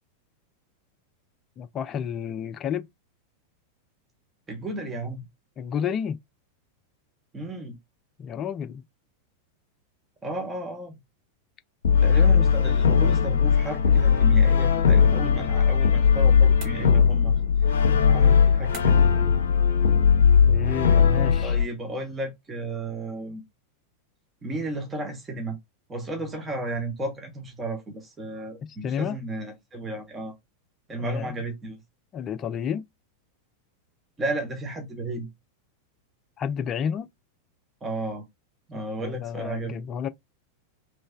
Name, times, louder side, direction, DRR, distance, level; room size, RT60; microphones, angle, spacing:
voice 1, 1.6-2.9 5.6-6.2 8.2-8.8 12.3-12.5 20.5-21.6 28.8-29.2 31.0-31.3 32.1-32.9 36.4-37.1 39.0-40.1, left 8 dB, 30° left, 0.4 m, -30 dB
voice 2, 4.5-5.3 7.3-7.8 10.2-11.0 12.0-17.3 18.1-19.0 21.4-23.4 24.4-25.6 25.9-30.3 30.9-31.8 34.2-35.3 37.8-38.2 38.7-39.8, right 2 dB, 15° right, 0.9 m, -33 dB
Brass instrument, 11.8-21.6, left 6 dB, 65° left, 0.7 m, -19 dB
sound 1, 16.6-17.3 18.7-19.2, right 3 dB, 35° right, 1.9 m, -44 dB
3.2 x 3.1 x 2.2 m
figure-of-eight pair, 90°, 0 cm